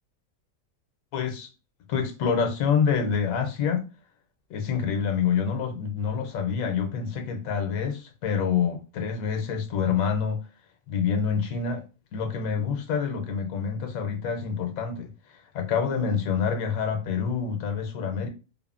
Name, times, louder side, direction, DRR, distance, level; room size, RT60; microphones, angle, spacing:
voice 1, 1.1-1.5 1.9-3.8 4.5-10.4 10.9-11.8 12.1-18.3, left 6 dB, 85° left, 1.0 m, -27 dB
2.7 x 2.5 x 2.3 m
omnidirectional pair, 1.4 m